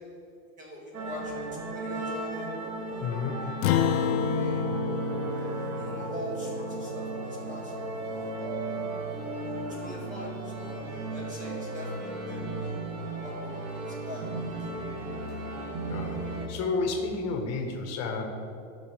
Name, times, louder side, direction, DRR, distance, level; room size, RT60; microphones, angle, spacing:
voice 1, 0.6-2.5 2.8-3.1 3.4-3.6 4.0-4.6 5.7-7.7 9.7-12.4 12.9-14.3, left 1 dB, 20° right, -4 dB, 2.5 m, -42 dB
sound 1, 0.9-16.5, right 2 dB, 90° right, 2.1 m, -35 dB
voice 2, 3.0-3.4 15.9-16.2 16.5-18.2, left 4 dB, 40° left, 3 dB, 1.6 m, -31 dB
Acoustic guitar, 3.6-8.3, left 6 dB, 65° left, 0.7 m, -30 dB
15.5 x 6.3 x 3.5 m, 2.7 s
supercardioid pair, 135°, 43 cm